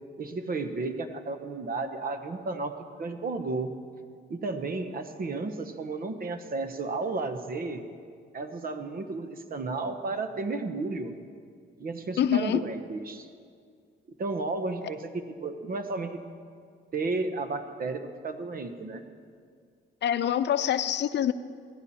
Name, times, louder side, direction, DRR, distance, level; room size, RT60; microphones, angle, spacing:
voice 1, 0.2-3.7 4.3-7.8 8.3-11.1 11.8-13.3 14.2-16.2 16.9-19.0, right 3 dB, 45° right, 8 dB, 1.2 m, -33 dB
voice 2, 12.2-12.6 20.0-21.3, left 10 dB, 60° left, 12 dB, 0.6 m, -25 dB
17.0 x 15.0 x 4.4 m, 2.2 s
cardioid pair, 90°, 20 cm